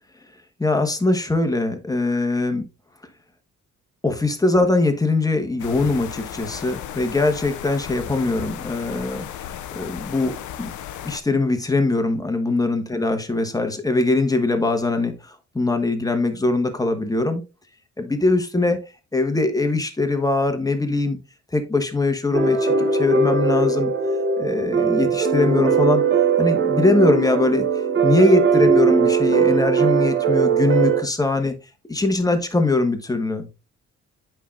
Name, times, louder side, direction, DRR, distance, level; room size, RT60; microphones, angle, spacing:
voice 1, 0.6-2.6 4.0-9.3 9.7-10.7 11.0-17.4 18.0-18.8 19.1-21.2 21.5-23.9 24.4-26.0 26.4-27.7 28.0-31.5 31.9-33.5, left 2 dB, 10° left, 1.2 m, -21 dB
sound 1, 5.6-11.2, left 10 dB, 75° left, 0.7 m, -35 dB
sound 2, 22.3-31.0, right 5 dB, 40° right, 1.2 m, -19 dB
8.3 x 5.6 x 2.5 m
cardioid pair, 90°, 30 cm